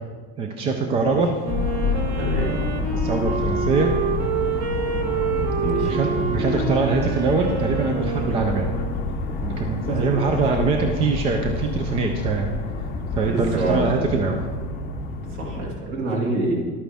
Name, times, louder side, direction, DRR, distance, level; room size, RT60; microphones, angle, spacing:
voice 1, 0.4-1.3 2.9-3.9 5.6-8.7 9.4-12.5 13.1-14.4, right 4 dB, 20° right, 4 dB, 0.3 m, -23 dB
Wind instrument woodwind instrument, 1.4-9.1, right 6 dB, 80° right, 1.5 m, -28 dB
sound 1, 1.5-15.7, left 3 dB, 25° left, 0.7 m, -28 dB
voice 2, 2.2-2.5 5.0-5.3 5.6-5.9 9.8-10.3 13.3-13.8 15.3-16.5, right 2 dB, 40° right, -1 dB, 2.2 m, -27 dB
11.5 x 9.0 x 3.5 m, 1.5 s
cardioid pair, 175°, 33 cm